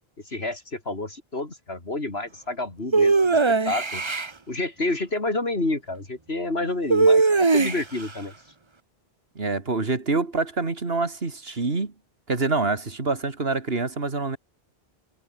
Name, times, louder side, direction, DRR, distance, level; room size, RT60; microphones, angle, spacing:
voice 1, 0.2-4.0 4.5-8.3, left 2 dB, 75° left, 4.2 m, -29 dB
sound 1, 2.9-4.3 6.9-8.1, right 3 dB, 30° right, 1.0 m, -19 dB
voice 2, 9.4-11.9 12.3-14.4, right 3 dB, 70° right, 2.7 m, -26 dB
omnidirectional pair, 1.0 m